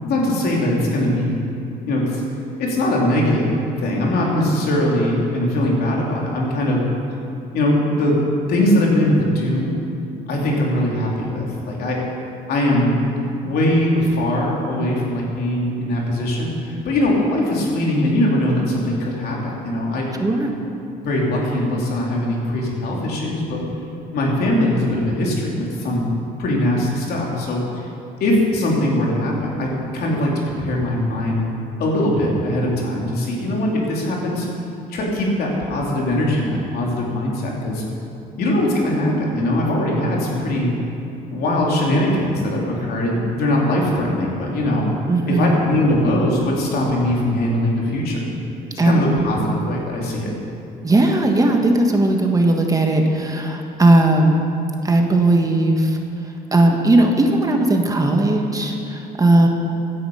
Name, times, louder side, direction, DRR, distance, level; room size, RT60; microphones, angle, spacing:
voice 1, 0.0-1.4 1.9-2.2 2.6-6.8 7.5-8.2 8.5-9.7 10.3-12.0 12.5-13.0 13.4-20.1 21.0-23.6 24.1-26.1 26.4-27.9 28.2-31.5 31.8-34.5 34.9-37.8 38.4-40.7 41.3-44.9 45.3-48.3 48.7-50.3, left 1 dB, 65° left, -3 dB, 3.4 m, -21 dB
voice 2, 20.2-20.5 45.1-45.6 48.8-48.9 49.5-49.6 50.8-54.4 54.8-59.5, right 2 dB, 20° right, 3 dB, 1.4 m, -17 dB
16.0 x 10.0 x 5.6 m, 2.7 s
cardioid pair, 110°, 17 cm